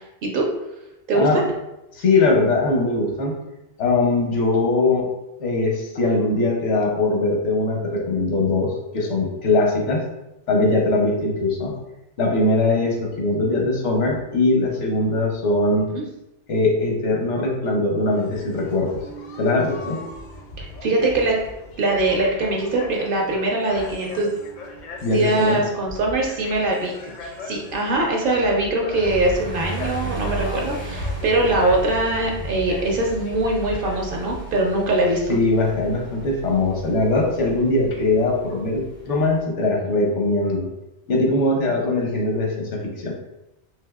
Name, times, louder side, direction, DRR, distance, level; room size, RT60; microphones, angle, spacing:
voice 1, 0.2-0.5 1.1-1.4 15.9-16.0 20.6-21.4 21.8-24.3 25.1-35.4, right 2 dB, 60° right, 0 dB, 0.7 m, -22 dB
voice 2, 1.1-1.5 1.9-3.3 3.8-5.1 5.4-10.0 10.5-11.7 12.2-15.9 16.5-19.0 19.4-20.0 25.0-25.6 35.3-40.7 41.1-43.1, left 2 dB, 85° left, 0 dB, 1.1 m, -21 dB
sound 1, 18.1-34.4, left 3 dB, 55° left, 0.5 m, -37 dB
sound 2, 28.9-39.4, right 3 dB, 15° right, 0.4 m, -35 dB
3.9 x 2.5 x 2.3 m, 0.91 s
omnidirectional pair, 1.2 m